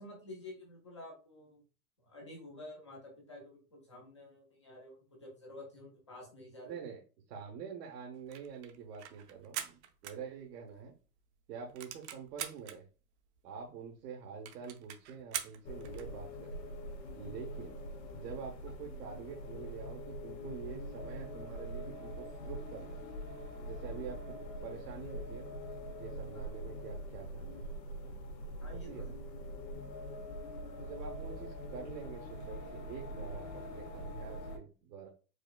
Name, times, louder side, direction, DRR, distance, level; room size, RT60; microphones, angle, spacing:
voice 1, 0.0-1.6 2.0-6.8 26.3-26.5 28.6-29.2, left 1 dB, 20° left, -2 dB, 0.3 m, -50 dB
voice 2, 6.6-7.0 7.3-10.9 11.5-12.8 13.4-16.6 17.1-17.8 18.1-23.0 23.7-24.3 24.6-25.6 26.0-27.7 28.7-29.2 30.8-35.1, right 6 dB, 70° right, 1 dB, 1.0 m, -46 dB
sound 1, 8.1-10.8 11.2-11.3 11.5-12.8 13.4-13.5 13.7-13.8 14.0-14.1 14.5-16.1, right 10 dB, 45° right, 0.5 m, -43 dB
sound 2, 15.6-34.6, equal, 85° left, 1.1 m, -43 dB
4.8 x 2.3 x 2.2 m, 0.36 s
hypercardioid pair, 145°, 50 cm